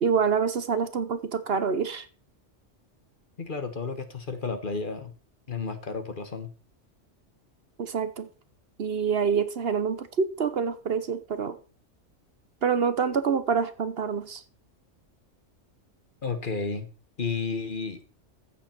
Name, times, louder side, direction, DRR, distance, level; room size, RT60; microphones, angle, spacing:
voice 1, 0.0-2.1 7.8-8.3 8.8-11.6 12.6-14.4, right 6 dB, 55° right, 1.1 m, -26 dB
voice 2, 3.4-5.1 5.5-6.5 16.2-16.9 17.2-18.0, left 4 dB, 45° left, 1.4 m, -32 dB
15.0 x 7.5 x 4.4 m
omnidirectional pair, 1.2 m